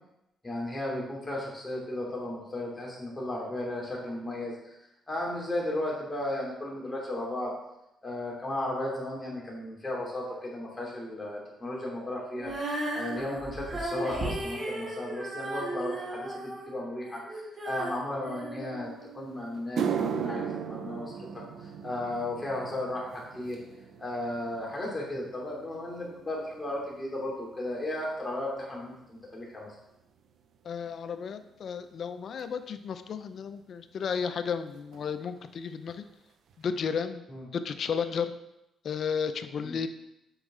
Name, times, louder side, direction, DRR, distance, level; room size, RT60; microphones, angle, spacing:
voice 1, 0.4-4.8 5.1-7.5 8.0-21.1 21.6-23.6 24.0-29.7 37.3-37.4 39.6-39.8, left 1 dB, 15° left, -4 dB, 2.8 m, -35 dB
Female singing, 12.4-19.4, right 1 dB, 35° right, 2.2 m, -36 dB
sound 1, 19.0-19.1 19.6-28.1 28.4-28.8 29.5-29.6 32.4-32.5 34.1-34.2 34.4-34.7 34.9-35.5 35.9-36.0 36.5-36.6, right 7 dB, 70° right, 0.6 m, -37 dB
voice 2, 30.6-36.0 36.6-37.2 37.6-38.3 38.8-39.9, left 6 dB, 60° left, 10 dB, 0.5 m, -33 dB
8.1 x 5.3 x 3.7 m, 0.88 s
cardioid pair, 90°, 0 cm